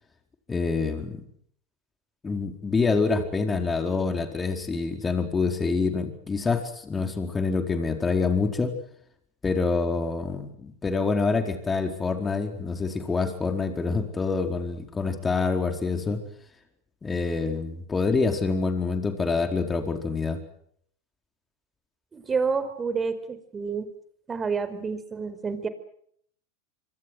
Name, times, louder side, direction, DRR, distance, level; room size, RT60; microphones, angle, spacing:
voice 1, 0.5-1.2 2.2-8.7 9.4-16.2 17.0-20.4, left 4 dB, 20° left, 6 dB, 4.5 m, -26 dB
voice 2, 22.1-23.9 24.3-25.7, right 5 dB, 20° right, 11 dB, 4.7 m, -29 dB
26.5 x 25.5 x 6.3 m, 0.65 s
hypercardioid pair, 95°, 0 cm